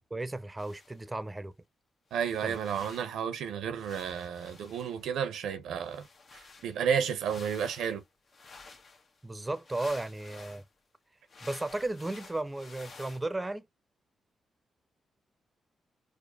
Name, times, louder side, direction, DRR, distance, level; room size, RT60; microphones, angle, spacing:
voice 1, 0.1-1.5 2.4-2.6 9.2-10.6 11.4-13.7, right 2 dB, 20° right, 0.6 m, -34 dB
sound 1, 0.6-1.1 2.1-3.2 3.7-5.1 5.8-10.6 11.3-13.2, left 4 dB, 55° left, 1.0 m, -52 dB
voice 2, 2.1-6.1 6.3-8.0, right 7 dB, 85° right, 0.6 m, -32 dB
4.9 x 2.1 x 2.4 m
supercardioid pair, 55°, 0 cm